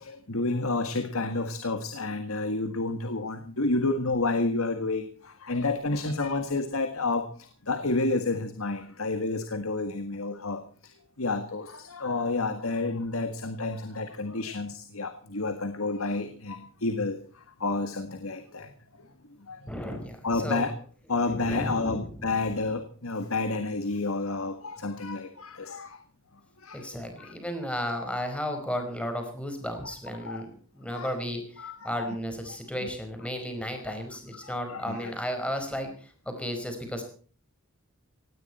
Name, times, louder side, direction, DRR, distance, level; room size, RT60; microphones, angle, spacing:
voice 1, 0.3-5.0 5.5-7.2 7.7-10.6 11.2-11.7 11.9-16.6 16.8-17.2 17.6-18.7 19.5-19.6 20.2-20.7 21.1-25.9 26.7-26.8 29.8-29.9 30.3-30.4 30.9-31.1 31.6-32.1 32.8-32.9 34.7-35.1, left 3 dB, 80° left, 8 dB, 1.8 m, -29 dB
voice 2, 19.7-20.7 21.0-22.4 26.7-37.0, equal, 5° left, 6 dB, 4.9 m, -34 dB
18.5 x 17.0 x 4.3 m, 0.43 s
head